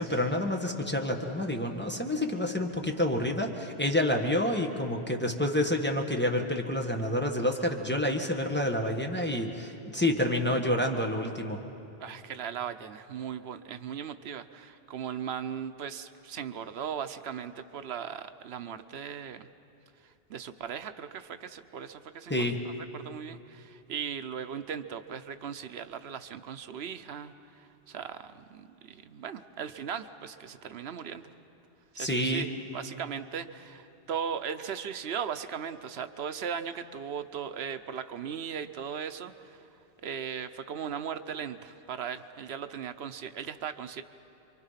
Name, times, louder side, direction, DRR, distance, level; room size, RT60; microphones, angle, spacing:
voice 1, 0.0-11.6 22.3-22.6 32.0-32.5, left 1 dB, 10° left, 1 dB, 1.4 m, -28 dB
voice 2, 12.0-19.5 20.3-22.4 22.9-31.2 31.9-32.5 32.7-39.6 40.0-44.0, right 7 dB, 80° right, 10 dB, 1.0 m, -38 dB
28.0 x 24.0 x 5.7 m, 2.9 s
omnidirectional pair, 1.1 m